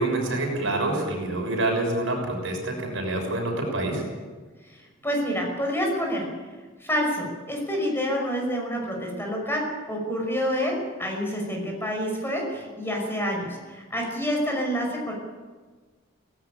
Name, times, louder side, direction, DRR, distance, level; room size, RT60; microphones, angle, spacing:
voice 1, 0.0-4.0, right 2 dB, 65° right, 2 dB, 6.4 m, -26 dB
voice 2, 4.7-6.3 6.8-15.1, equal, 10° left, 0 dB, 5.7 m, -28 dB
18.5 x 17.5 x 8.9 m, 1.4 s
head